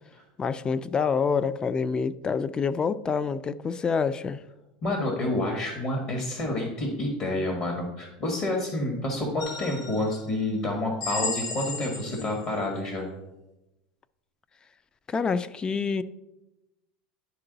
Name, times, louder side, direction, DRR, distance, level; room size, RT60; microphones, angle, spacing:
voice 1, 0.4-4.4 15.1-16.0, left 5 dB, 20° left, 0.3 m, -27 dB
voice 2, 4.8-13.1, left 1 dB, 45° left, 1.5 m, -29 dB
sound 1, 9.4-10.2 11.0-12.5, left 3 dB, 75° left, 2.1 m, -34 dB
11.0 x 3.8 x 3.9 m
supercardioid pair, 125°, 4 cm